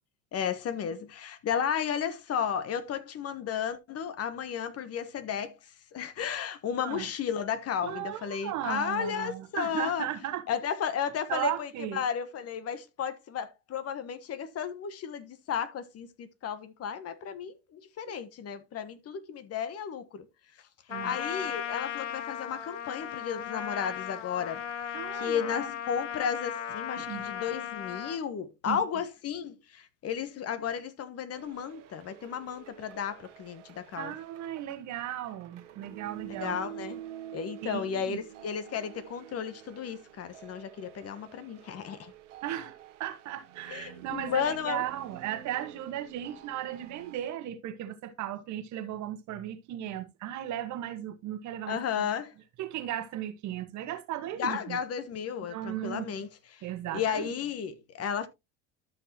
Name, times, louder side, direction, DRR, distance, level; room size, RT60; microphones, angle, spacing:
voice 1, 0.3-5.6 5.9-10.1 10.5-20.3 21.0-34.1 36.4-37.0 37.3-42.1 43.7-44.8 51.7-52.3 54.4-56.7 56.9-58.3, left 8 dB, 40° left, 1.2 m, -33 dB
voice 2, 7.8-10.4 11.3-12.0 18.0-18.1 20.9-21.2 24.9-25.7 27.0-27.2 28.6-28.8 34.0-36.6 37.6-38.2 42.4-52.1 52.6-54.8 55.5-56.1 56.6-57.3, right 12 dB, 50° right, 1.4 m, -36 dB
Trumpet, 20.9-28.2, left 9 dB, 85° left, 0.9 m, -36 dB
sound 1, 31.3-47.2, right 11 dB, 80° right, 1.5 m, -48 dB
13.0 x 5.8 x 2.9 m
hypercardioid pair, 75°, 36 cm